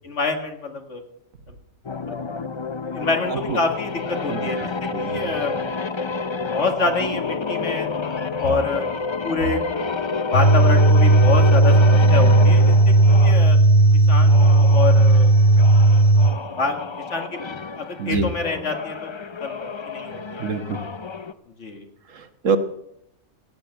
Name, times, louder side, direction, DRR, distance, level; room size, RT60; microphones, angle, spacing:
voice 1, 0.0-1.0 2.1-2.2 2.9-4.6 5.0-5.6 6.5-8.1 8.4-8.8 9.2-9.7 10.3-13.6 14.1-15.3 16.6-16.8 17.1-19.1 19.4-20.5 21.6-21.9, left 3 dB, 60° left, 5 dB, 2.2 m, -26 dB
sound 1, 1.8-13.5 14.2-21.3, left 4 dB, 40° left, 0.4 m, -29 dB
sound 2, 10.3-16.3, right 2 dB, 85° left, 2.7 m, -14 dB
voice 2, 20.4-20.8 22.2-22.6, right 5 dB, 70° right, 9 dB, 1.5 m, -25 dB
16.5 x 8.8 x 7.9 m, 0.78 s
omnidirectional pair, 1.4 m